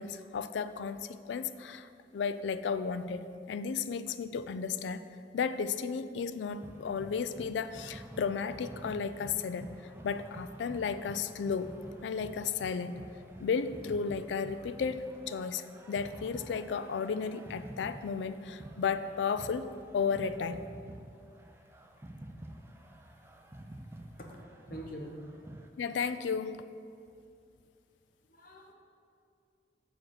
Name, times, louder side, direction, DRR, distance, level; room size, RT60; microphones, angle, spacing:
voice 1, 0.0-5.0 5.3-11.8 12.0-13.0 13.4-20.6 25.8-26.6, left 5 dB, 85° left, 12 dB, 0.3 m, -34 dB
sound 1, 6.6-25.7, right 1 dB, 15° right, 0.4 m, -49 dB
voice 2, 24.7-25.6 27.1-27.2 28.3-28.7, equal, 50° left, 0 dB, 1.0 m, -45 dB
7.3 x 4.5 x 6.4 m, 2.4 s
head